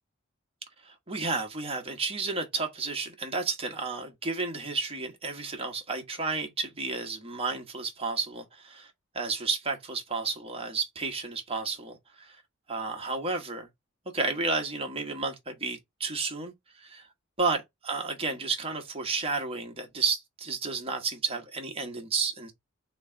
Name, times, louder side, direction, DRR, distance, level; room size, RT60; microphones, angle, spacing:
voice 1, 0.8-12.4 12.7-13.7 14.1-17.1 17.4-22.5, right 4 dB, 30° right, 1.2 m, -32 dB
3.6 x 3.1 x 4.4 m
head